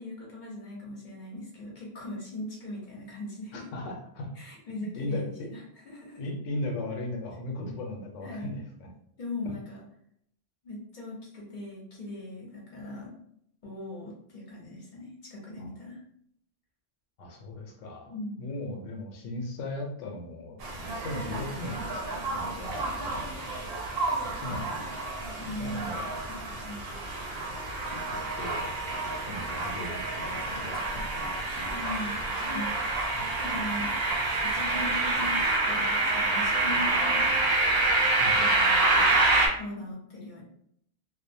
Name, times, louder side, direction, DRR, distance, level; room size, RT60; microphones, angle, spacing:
voice 1, 0.0-3.7 4.4-6.2 8.2-8.5 9.2-9.8 10.6-13.1 13.6-16.0 18.1-18.4 25.4-25.9 26.3-26.9 31.7-32.2 32.5-32.7 33.3-33.9 34.4-37.5 38.4-39.2 39.5-40.4, left 1 dB, 45° left, -4 dB, 0.8 m, -39 dB
voice 2, 3.5-4.3 4.8-5.5 6.2-8.9 9.4-9.5 15.6-15.7 17.2-18.1 18.4-23.0 24.2-24.9 25.6-26.1 28.3-28.7 29.3-31.1 33.1-33.3 38.2-38.4, left 2 dB, 90° left, 2 dB, 0.9 m, -37 dB
sound 1, 20.6-39.5, right 2 dB, 60° right, 0.8 m, -28 dB
2.5 x 2.0 x 2.6 m, 0.72 s
omnidirectional pair, 1.2 m